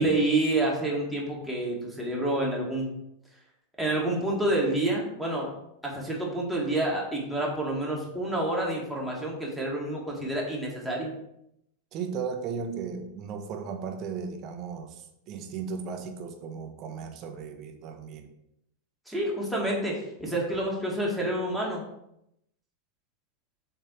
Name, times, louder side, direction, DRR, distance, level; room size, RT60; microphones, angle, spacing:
voice 1, 0.0-2.9 3.8-5.5 5.8-11.1 19.1-21.8, right 1 dB, ahead, -3 dB, 1.9 m, -28 dB
voice 2, 11.9-18.3, right 6 dB, 35° right, 5 dB, 0.9 m, -36 dB
7.3 x 3.4 x 4.5 m, 0.80 s
figure-of-eight pair, 90°, 0 cm